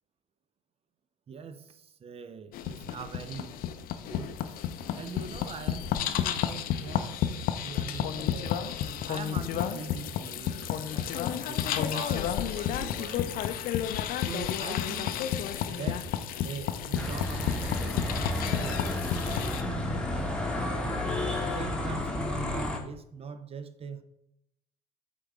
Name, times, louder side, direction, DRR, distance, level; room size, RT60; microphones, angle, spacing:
voice 1, 1.3-3.6 4.0-4.4 5.0-7.1 7.6-8.6 9.1-13.4 14.2-15.1 15.7-16.1 16.4-20.3 20.7-21.1 21.5-24.0, right 5 dB, 30° right, 0.6 m, -42 dB
sound 1, 2.5-19.6, left 9 dB, 50° left, 0.5 m, -31 dB
sound 2, 16.9-22.8, left 2 dB, 5° left, 1.2 m, -31 dB
7.9 x 3.7 x 3.6 m
figure-of-eight pair, 50°, 19 cm